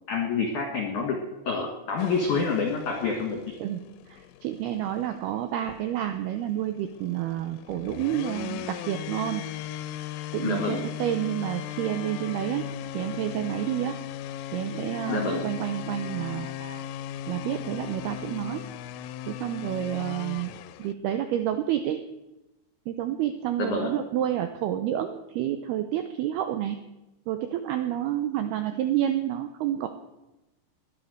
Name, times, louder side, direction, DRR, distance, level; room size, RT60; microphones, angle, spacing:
voice 1, 0.1-1.2 1.5-3.4 10.4-10.8 15.1-15.4 23.6-23.9, left 5 dB, 50° left, 2 dB, 2.8 m, -27 dB
sound 1, 2.0-20.9, left 12 dB, 90° left, 3.3 m, -38 dB
voice 2, 4.1-9.4 10.3-12.7 12.9-14.0 14.5-16.8 17.3-18.6 19.3-20.5 20.8-22.0 22.9-26.8 27.3-29.9, right 11 dB, 90° right, 8 dB, 2.3 m, -29 dB
21.0 x 9.6 x 6.6 m, 0.99 s
omnidirectional pair, 5.6 m